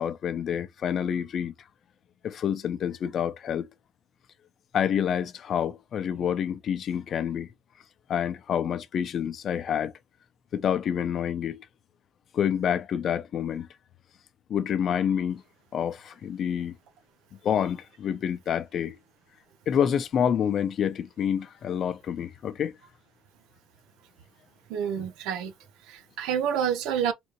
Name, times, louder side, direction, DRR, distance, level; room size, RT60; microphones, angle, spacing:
voice 1, 0.0-1.5 2.2-3.7 4.7-7.5 8.1-9.9 10.5-11.7 12.3-13.7 14.5-15.4 15.7-16.7 17.4-19.0 19.7-22.7, left 8 dB, 40° left, 0.7 m, -28 dB
voice 2, 24.7-25.5 25.9-27.1, right 8 dB, 70° right, 0.9 m, -28 dB
3.9 x 3.4 x 3.1 m
cardioid pair, 140°, 0 cm